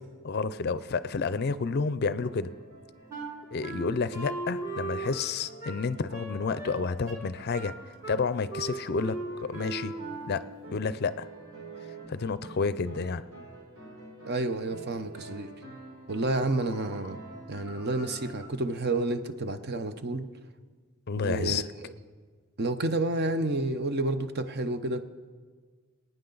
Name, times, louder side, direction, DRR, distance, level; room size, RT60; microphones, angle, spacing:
voice 1, 0.2-2.5 3.5-7.7 8.1-9.9 10.3-10.5 10.7-11.3 12.1-13.2 21.1-21.6, left 4 dB, 50° left, 15 dB, 0.4 m, -30 dB
sound 1, 2.2-18.5, right 2 dB, 75° right, 3.4 m, -48 dB
Wind instrument woodwind instrument, 3.1-10.6, right 2 dB, 15° right, 1.6 m, -38 dB
voice 2, 14.2-15.5 16.1-17.2 17.5-20.3 21.2-21.6 22.6-25.0, right 2 dB, 50° right, 9 dB, 0.7 m, -30 dB
25.0 x 9.2 x 3.9 m, 1.5 s
head